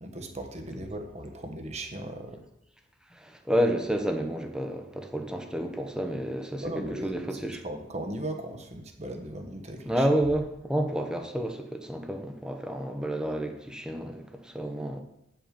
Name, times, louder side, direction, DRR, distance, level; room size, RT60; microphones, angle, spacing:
voice 1, 0.0-2.4 6.6-10.1, right 1 dB, 35° right, 4 dB, 1.3 m, -37 dB
voice 2, 3.1-7.6 9.9-15.0, right 1 dB, 5° right, 4 dB, 1.0 m, -30 dB
8.7 x 7.9 x 5.2 m, 0.81 s
head